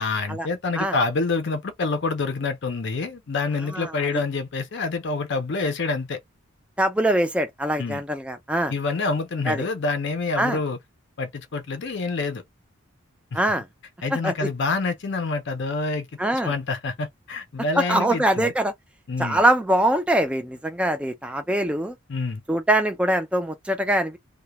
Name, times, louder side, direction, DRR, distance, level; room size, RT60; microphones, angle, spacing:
voice 1, 0.0-6.2 7.8-8.0 8.7-10.8 11.2-12.4 13.3-13.4 14.0-18.5 19.1-19.4 22.1-22.4, left 3 dB, 55° left, 0.5 m, -27 dB
voice 2, 6.8-8.7 9.5-9.6 10.4-10.6 13.3-13.7 14.1-14.5 16.2-16.5 17.8-18.7 19.2-22.0 22.5-24.2, right 1 dB, 5° right, 0.4 m, -23 dB
2.3 x 2.1 x 2.8 m
head